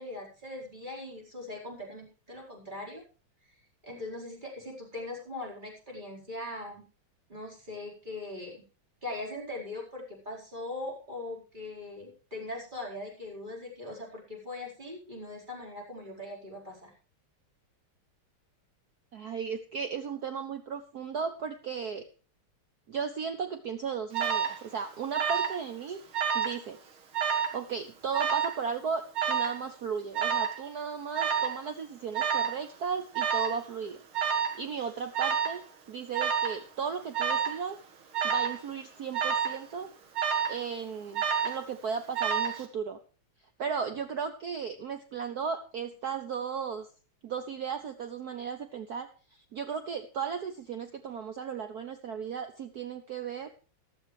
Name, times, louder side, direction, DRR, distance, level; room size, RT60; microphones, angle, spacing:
voice 1, 0.0-3.0 3.4-3.5 3.8-6.8 7.3-8.6 9.0-16.9, left 2 dB, 20° right, -1 dB, 4.8 m, -40 dB
voice 2, 19.1-22.1 22.9-26.0 26.3-26.8 27.5-34.0 34.6-35.6 35.9-37.8 38.2-39.9 40.4-43.0 43.6-46.9 47.2-53.5, right 6 dB, 55° right, 8 dB, 1.2 m, -35 dB
Alarm, 24.1-24.6 25.1-25.6 25.9-26.6 27.1-27.6 28.1-28.6 29.1-29.6 30.1-30.6 31.1-31.6 32.1-32.6 33.1-33.6 34.1-34.6 35.1-35.6 36.1-36.6 37.1-37.6 38.1-38.6 39.1-39.6 40.1-40.6 41.1-41.6 42.1-42.6, right 7 dB, 75° right, 2.5 m, -29 dB
15.0 x 12.5 x 3.3 m, 0.35 s
omnidirectional pair, 2.3 m